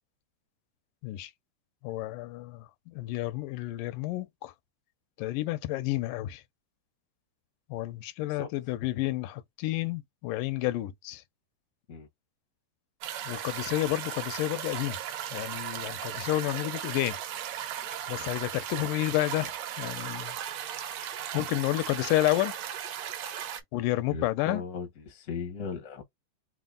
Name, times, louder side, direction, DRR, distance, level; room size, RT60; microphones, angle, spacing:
voice 1, 1.8-4.5 5.2-6.4 7.7-11.2 13.3-15.0 15.3-17.2 18.1-20.4 21.0-22.5 23.7-24.6, left 16 dB, 85° left, 2.2 m, -30 dB
sound 1, 13.0-23.6, right 10 dB, 70° right, 1.7 m, -37 dB
voice 2, 24.1-26.0, left 5 dB, 70° left, 0.7 m, -37 dB
5.0 x 2.1 x 3.7 m
omnidirectional pair, 3.7 m